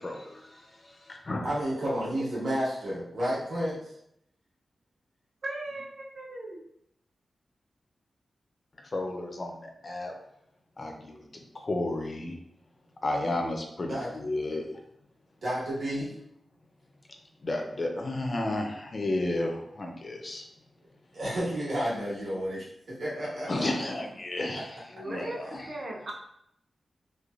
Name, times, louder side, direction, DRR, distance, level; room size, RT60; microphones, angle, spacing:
voice 1, 0.0-1.5 8.9-10.1 10.8-12.4 13.0-14.7 16.0-16.1 17.4-20.5 23.5-24.8 25.0-25.7, left 2 dB, 35° left, 2 dB, 0.4 m, -32 dB
voice 2, 1.4-3.9 13.9-14.1 15.4-16.1 21.1-23.8 24.5-24.6, equal, 70° right, -8 dB, 1.2 m, -31 dB
voice 3, 5.4-6.6 24.9-25.4 25.7-26.1, right 2 dB, 55° right, -2 dB, 0.6 m, -37 dB
3.1 x 2.1 x 2.4 m, 0.75 s
wide cardioid pair, 155°, 0 cm